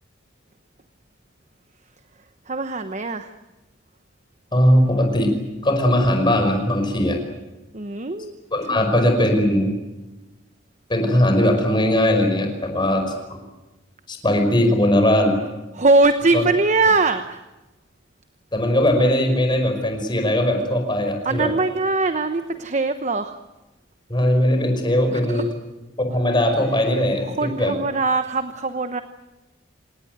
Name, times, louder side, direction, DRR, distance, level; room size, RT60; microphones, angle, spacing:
voice 1, 2.5-3.3 7.7-8.3 8.7-8.8 15.7-17.4 21.2-23.4 25.3-25.4 27.3-29.0, right 3 dB, 35° right, 9 dB, 1.0 m, -21 dB
voice 2, 4.5-5.3 5.6-7.2 8.5-9.7 10.9-13.4 14.1-15.5 16.3-16.5 18.5-21.5 24.1-25.5 26.0-27.7, left 1 dB, 25° left, 4 dB, 5.3 m, -19 dB
27.0 x 19.0 x 9.4 m, 1.1 s
head